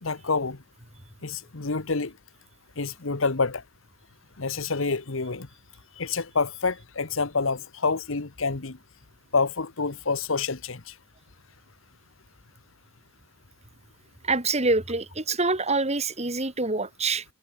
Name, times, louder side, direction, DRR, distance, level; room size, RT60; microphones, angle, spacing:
voice 1, 0.0-0.6 1.2-2.1 2.8-3.6 4.4-5.5 6.0-8.8 9.3-10.9, left 4 dB, 80° left, 1.3 m, -27 dB
voice 2, 14.2-17.2, right 3 dB, 35° right, 3.6 m, -26 dB
head